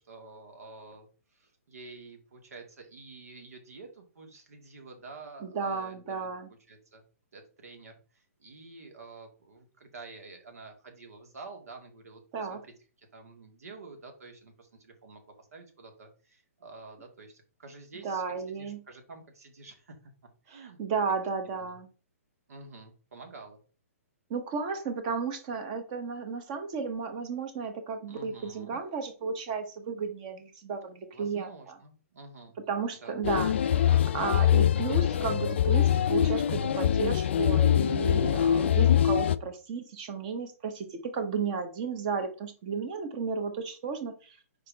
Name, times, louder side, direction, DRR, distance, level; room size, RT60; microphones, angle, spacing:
voice 1, 0.0-6.3 6.7-7.0 7.3-20.1 20.4-20.8 21.6-21.8 22.5-23.6 28.1-28.8 31.1-32.6 33.0-33.2, right 3 dB, 75° right, 3 dB, 2.2 m, -49 dB
voice 2, 5.4-6.5 12.3-12.6 18.0-18.8 20.5-21.9 24.3-31.8 32.7-44.4, right 5 dB, 30° right, 7 dB, 1.1 m, -33 dB
sound 1, 33.2-39.4, left 10 dB, 45° left, 0.3 m, -24 dB
5.8 x 4.7 x 3.5 m, 0.36 s
hypercardioid pair, 170°, 8 cm